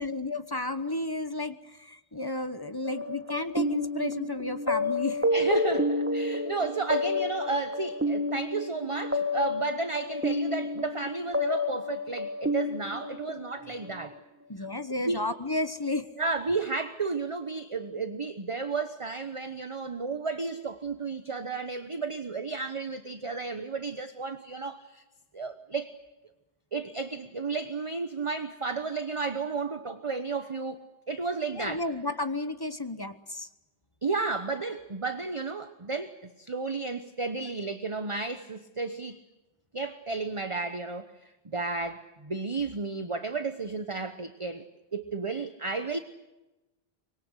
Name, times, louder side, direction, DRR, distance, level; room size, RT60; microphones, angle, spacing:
voice 1, 0.0-5.3 14.5-16.1 31.5-33.5, left 2 dB, 20° left, 11 dB, 1.0 m, -32 dB
sound 1, 2.8-14.1, left 1 dB, 10° right, 1.2 m, -30 dB
voice 2, 5.3-14.2 14.6-14.7 15.0-15.2 16.2-25.0 25.3-25.9 26.7-31.8 34.0-39.2 39.7-46.0, right 4 dB, 30° right, 9 dB, 1.0 m, -33 dB
25.0 x 22.0 x 8.1 m, 1.0 s
omnidirectional pair, 1.2 m